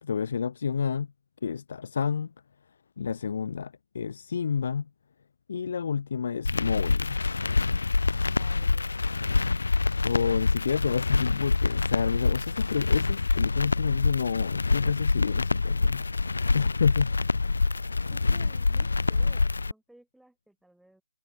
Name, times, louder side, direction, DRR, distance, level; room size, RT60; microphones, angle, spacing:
voice 1, 0.0-1.1 1.4-2.3 3.0-4.9 5.5-7.2 10.0-16.2 16.5-17.2, left 6 dB, 55° left, 2.8 m, -29 dB
sound 1, 6.5-19.7, left 3 dB, 85° left, 1.7 m, -26 dB
voice 2, 8.1-9.0 18.1-21.0, right 1 dB, ahead, 5.4 m, -57 dB
hypercardioid pair, 155°, 0 cm